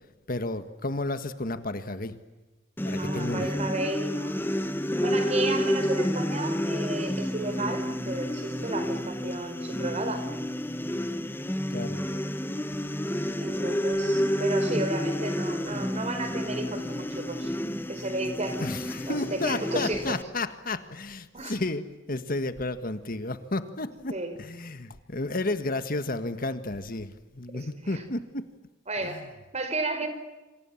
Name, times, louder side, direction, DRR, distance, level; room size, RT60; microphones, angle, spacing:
voice 1, 0.3-2.1 2.8-3.5 11.7-12.1 18.6-28.5 29.0-29.3, left 2 dB, 50° left, 10 dB, 1.7 m, -32 dB
sound 1, 2.8-20.2, equal, 10° left, 1.2 m, -30 dB
voice 2, 2.9-4.4 5.0-10.3 13.4-17.5 17.9-18.7 19.1-20.2 21.3-21.6 24.1-24.3 27.5-28.0 28.9-30.1, right 2 dB, 35° right, 8 dB, 5.0 m, -33 dB
28.0 x 26.5 x 7.3 m, 1.1 s
head